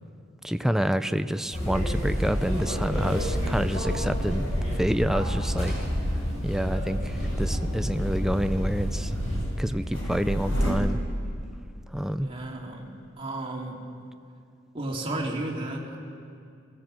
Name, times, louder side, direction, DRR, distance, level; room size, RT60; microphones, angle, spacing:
voice 1, 0.4-4.5 4.8-5.7 6.4-9.2 9.6-11.0 11.9-12.3, equal, ahead, 10 dB, 0.5 m, -28 dB
sound 1, 1.5-9.4, equal, 35° left, 7.6 m, -29 dB
sound 2, 2.7-10.7, equal, 80° left, 5.8 m, -34 dB
voice 2, 12.2-13.9 14.7-16.0, right 2 dB, 25° right, -2 dB, 2.9 m, -33 dB
23.0 x 17.0 x 7.7 m, 2.4 s
head